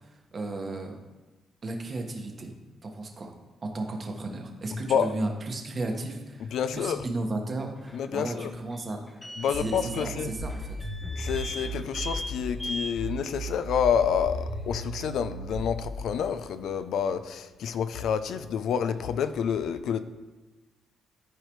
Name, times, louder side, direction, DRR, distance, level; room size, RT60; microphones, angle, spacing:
voice 1, 0.3-1.0 1.6-2.5 2.8-3.3 3.6-9.0 9.6-10.8, right 2 dB, 40° right, 3 dB, 1.4 m, -34 dB
voice 2, 4.7-5.1 6.5-7.0 7.9-8.5 9.4-10.3 11.2-20.0, left 7 dB, 75° left, 10 dB, 0.4 m, -28 dB
sound 1, 7.8-15.0, left 1 dB, 20° left, 0.9 m, -41 dB
sound 2, 9.5-12.6 13.0-16.0, right 1 dB, 55° left, 1.9 m, -36 dB
13.5 x 4.9 x 3.1 m, 1.2 s
cardioid pair, 95°, 0 cm